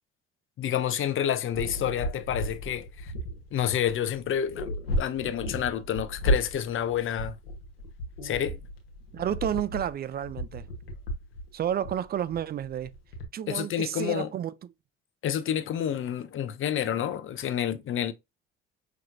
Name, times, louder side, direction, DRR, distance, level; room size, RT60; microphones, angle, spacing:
voice 1, 0.6-3.1 3.5-7.3 8.2-8.6 13.5-14.3 15.2-18.1, left 9 dB, 45° left, 0.8 m, -29 dB
sound 1, 1.5-13.2, equal, 90° left, 1.1 m, -34 dB
voice 2, 9.1-10.6 11.5-12.9 13.3-14.5, right 10 dB, 35° right, 0.4 m, -31 dB
5.8 x 3.1 x 2.5 m
hypercardioid pair, 60°, 29 cm